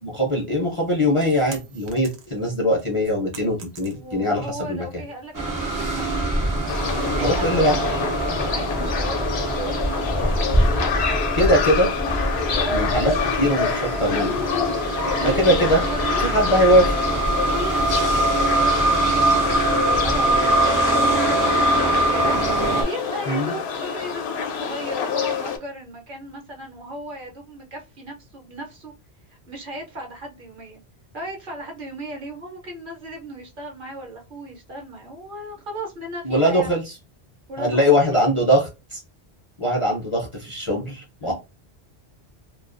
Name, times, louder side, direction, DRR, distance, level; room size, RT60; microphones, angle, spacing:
voice 1, 0.0-4.9 7.2-7.8 11.3-11.9 12.7-14.4 15.2-15.8 16.2-17.0 23.3-23.5 36.2-36.8 37.6-39.0 39.6-41.3, equal, 40° left, -2 dB, 0.5 m, -21 dB
sound 1, 1.5-2.5 2.9-4.3, right 5 dB, 90° right, 0.9 m, -43 dB
voice 2, 3.9-6.3 7.0-7.8 8.5-9.2 9.5-10.4 12.4-12.8 15.0-16.2 17.5-28.9 29.3-30.8 31.1-36.7 37.5-38.2 41.2-41.3, right 1 dB, 55° right, 1 dB, 0.8 m, -36 dB
sound 2, 5.3-22.8, right 1 dB, 35° right, 0.3 m, -23 dB
sound 3, 6.7-25.6, left 6 dB, 75° left, 0.8 m, -27 dB
2.3 x 2.2 x 2.4 m, 0.26 s
omnidirectional pair, 1.1 m